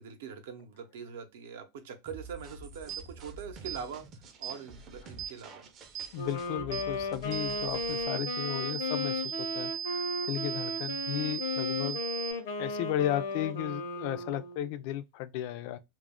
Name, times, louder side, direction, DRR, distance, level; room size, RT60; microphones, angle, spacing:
voice 1, 0.0-4.0 4.4-5.7, right 7 dB, 80° right, 0.7 m, -43 dB
sound 1, 2.1-8.1, right 3 dB, 30° right, 0.4 m, -49 dB
sound 2, 2.9-3.0 3.7-3.8 4.4-4.6 5.2-5.3 5.9-6.1 6.7-6.9 7.3-12.3, right 9 dB, 50° right, 0.8 m, -37 dB
Wind instrument woodwind instrument, 6.1-14.8, left 3 dB, 85° left, 0.7 m, -35 dB
voice 2, 6.1-12.0 12.6-15.8, left 12 dB, 55° left, 0.3 m, -35 dB
2.3 x 2.0 x 3.5 m
supercardioid pair, 150°, 0 cm